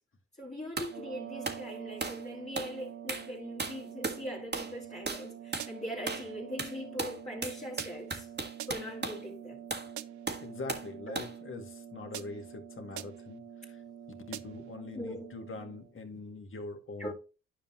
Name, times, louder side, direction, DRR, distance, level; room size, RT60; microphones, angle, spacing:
voice 1, 0.4-8.3 8.7-9.6 11.1-11.2 14.9-15.3 17.0-17.1, equal, 25° left, 2.4 m, -41 dB
sound 1, 0.8-1.0 1.4-1.6 2.0-2.2 2.6-2.8 3.1-3.3 3.6-4.2 4.5-4.8 5.1-5.3 5.5-5.7 6.1-6.3 6.6-9.2 9.7-9.9 10.3-10.9 11.2-11.4, right 4 dB, 35° right, 1.7 m, -36 dB
sound 2, 0.8-16.0, right 9 dB, 50° right, 1.4 m, -47 dB
sound 3, 5.6-6.0 7.8-8.2 8.6-9.0 10.0-10.4 12.1-12.6 13.0-13.4 14.3-14.7, right 13 dB, 75° right, 0.6 m, -45 dB
voice 2, 10.4-13.8 14.3-17.1, left 3 dB, 45° left, 1.9 m, -43 dB
10.5 x 5.5 x 3.0 m
cardioid pair, 65°, 30 cm